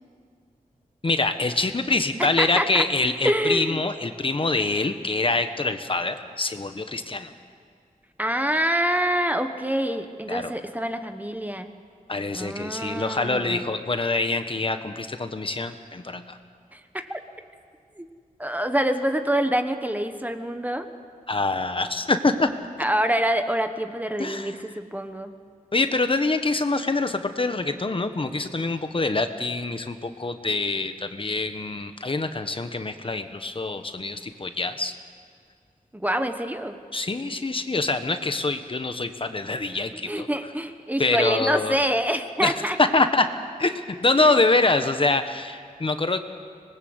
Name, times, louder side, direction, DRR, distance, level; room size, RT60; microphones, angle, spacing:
voice 1, 1.0-7.3 10.3-10.5 12.1-16.4 21.3-22.5 24.2-24.6 25.7-34.9 36.9-40.3 41.0-41.8 42.4-42.5 42.8-43.3 43.6-46.2, left 3 dB, 35° left, 8 dB, 1.2 m, -25 dB
voice 2, 2.2-2.8 3.2-3.8 8.2-11.7 12.3-13.6 16.7-17.2 18.0-18.1 18.4-20.9 22.8-25.3 35.9-36.7 40.1-42.8 44.2-44.3, right 1 dB, 10° right, 7 dB, 1.2 m, -26 dB
26.0 x 20.0 x 8.0 m, 2.1 s
wide cardioid pair, 110°, 15 cm